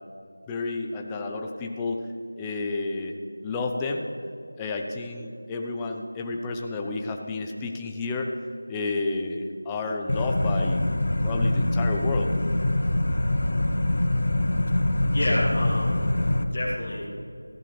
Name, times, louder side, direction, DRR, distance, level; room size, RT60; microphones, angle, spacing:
voice 1, 0.5-2.1 2.4-3.1 3.4-4.1 4.6-8.3 8.7-10.8 11.2-12.3, left 3 dB, 10° left, 2 dB, 0.5 m, -30 dB
sound 1, 10.1-16.4, left 1 dB, 55° left, 1.0 m, -24 dB
voice 2, 15.1-17.1, left 1 dB, 30° left, -9 dB, 2.1 m, -29 dB
14.5 x 13.5 x 3.2 m, 2.5 s
figure-of-eight pair, 175°, 0 cm